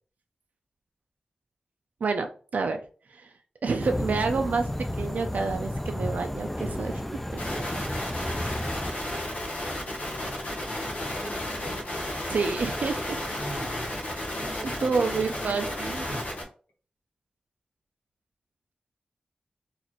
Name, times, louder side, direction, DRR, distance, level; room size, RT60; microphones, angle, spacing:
voice 1, 2.0-2.8 3.1-3.3 3.6-4.7 5.0-7.0 12.3-13.2 14.8-16.0, right 4 dB, 80° right, 5 dB, 0.4 m, -28 dB
sound 1, 3.8-8.9, left 1 dB, 5° left, 0.3 m, -32 dB
sound 2, 7.4-16.4, left 1 dB, 80° left, 1.0 m, -33 dB
voice 2, 11.2-11.9 13.3-13.9 14.4-16.3, equal, 55° left, -1 dB, 1.2 m, -42 dB
4.0 x 2.4 x 3.0 m, 0.40 s
wide cardioid pair, 115°, 3 cm